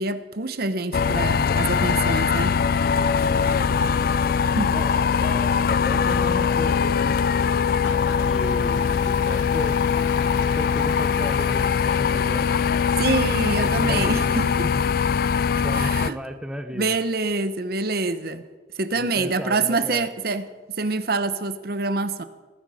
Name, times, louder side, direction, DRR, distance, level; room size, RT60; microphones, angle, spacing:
voice 1, 0.0-2.5 4.6-4.8 13.0-14.5 15.7-16.2 16.7-18.4 18.7-20.4 20.8-22.2, right 3 dB, 55° right, 11 dB, 0.9 m, -26 dB
sound 1, 0.9-16.1, left 6 dB, 50° left, 0.4 m, -22 dB
voice 2, 3.3-3.8 4.7-4.9 5.2-7.2 8.2-9.8 10.5-12.5 13.5-14.7 15.3-17.0 18.9-20.1, equal, 5° right, 7 dB, 0.7 m, -34 dB
Applause / Crowd, 7.3-14.7, left 5 dB, 90° left, 0.9 m, -40 dB
19.5 x 11.5 x 5.0 m, 1.3 s
head